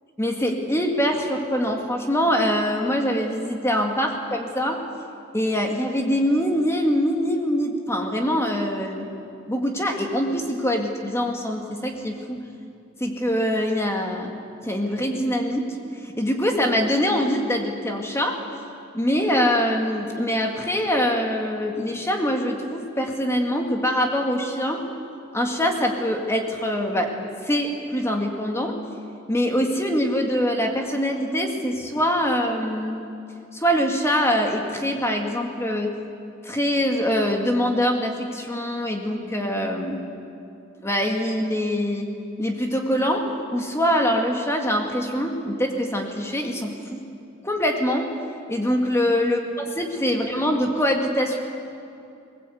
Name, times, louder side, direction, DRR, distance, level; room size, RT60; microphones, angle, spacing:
voice 1, 0.2-4.8 5.3-9.1 9.5-12.5 13.0-14.3 14.6-18.4 18.9-24.9 25.3-27.1 27.4-28.8 29.3-33.1 33.5-36.0 36.4-40.0 40.8-42.1 42.4-47.0 47.4-48.1 48.5-49.4 49.8-51.4, equal, 15° left, 2 dB, 2.1 m, -24 dB
20.5 x 20.0 x 8.5 m, 2.6 s
head